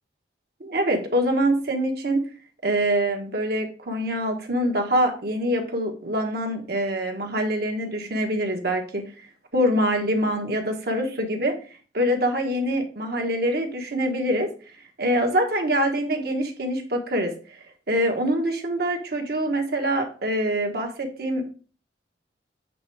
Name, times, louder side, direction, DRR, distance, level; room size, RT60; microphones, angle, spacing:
voice 1, 0.6-2.2 2.6-9.0 9.5-11.5 11.9-14.5 15.0-17.6 17.9-21.5, equal, 55° right, 3 dB, 1.4 m, -24 dB
7.8 x 3.4 x 4.7 m, 0.38 s
head